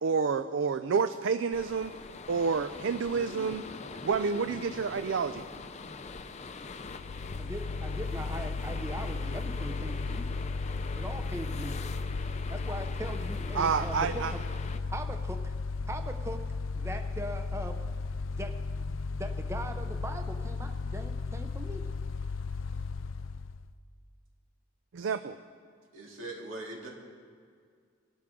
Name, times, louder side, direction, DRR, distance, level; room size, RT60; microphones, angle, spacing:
voice 1, 0.0-1.9 2.3-3.6 4.0-5.5 13.5-14.3 24.9-25.4, right 5 dB, 70° right, 11 dB, 0.4 m, -29 dB
sound 1, 1.5-14.8, left 4 dB, 35° left, 0.5 m, -43 dB
voice 2, 2.9-4.0 4.3-4.6 4.9-5.0 5.5-5.6 25.9-26.9, right 1 dB, 85° right, -2 dB, 3.1 m, -44 dB
Mechanical fan, 6.9-23.7, left 4 dB, 90° left, 0.5 m, -35 dB
voice 3, 7.4-10.4 10.9-11.8 12.5-14.4 14.9-15.5 15.9-16.4 16.7-17.8 18.2-21.8, right 1 dB, 15° right, 6 dB, 0.6 m, -40 dB
22.5 x 12.5 x 3.7 m, 2.1 s
head